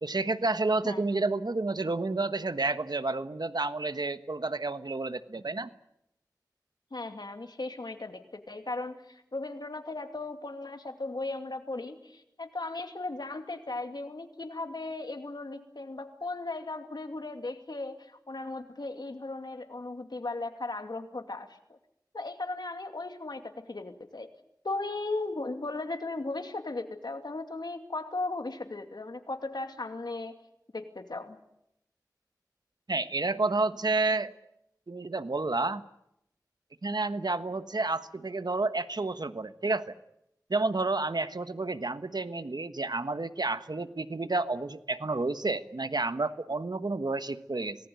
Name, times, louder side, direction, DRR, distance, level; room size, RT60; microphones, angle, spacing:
voice 1, 0.0-5.7 32.9-34.3 34.9-35.8 36.8-39.9 40.5-47.8, right 3 dB, 75° right, 11 dB, 1.3 m, -30 dB
voice 2, 6.9-21.8 22.1-24.3 24.6-30.3 30.7-31.4, left 2 dB, 85° left, 6 dB, 2.6 m, -37 dB
27.0 x 19.5 x 9.4 m, 0.82 s
wide cardioid pair, 40°, 7 cm